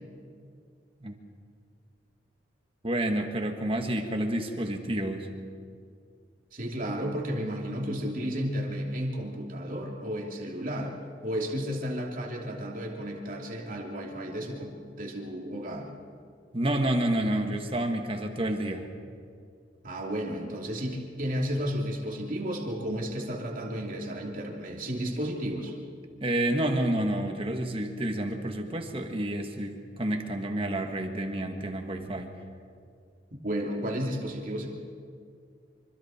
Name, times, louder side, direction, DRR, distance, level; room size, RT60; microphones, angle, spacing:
voice 1, 2.8-5.3 16.5-18.9 26.2-32.3, right 1 dB, 30° right, 4 dB, 1.8 m, -29 dB
voice 2, 6.5-15.9 19.8-25.7 33.4-34.7, equal, 50° right, 0 dB, 3.0 m, -33 dB
25.5 x 25.0 x 4.5 m, 2.3 s
head